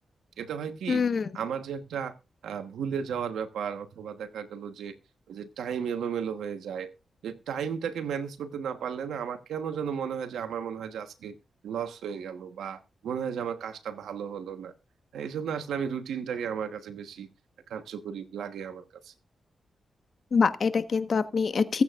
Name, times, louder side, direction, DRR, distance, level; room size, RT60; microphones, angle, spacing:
voice 1, 0.4-1.0 1.3-2.1 2.4-5.0 5.3-6.9 7.2-11.3 11.6-14.7 15.1-17.3 17.7-19.1, right 7 dB, 90° right, 9 dB, 1.3 m, -34 dB
voice 2, 0.9-1.3 20.3-21.8, left 5 dB, 60° left, 10 dB, 1.3 m, -24 dB
22.5 x 8.6 x 2.5 m, 0.29 s
cardioid pair, 55°, 0 cm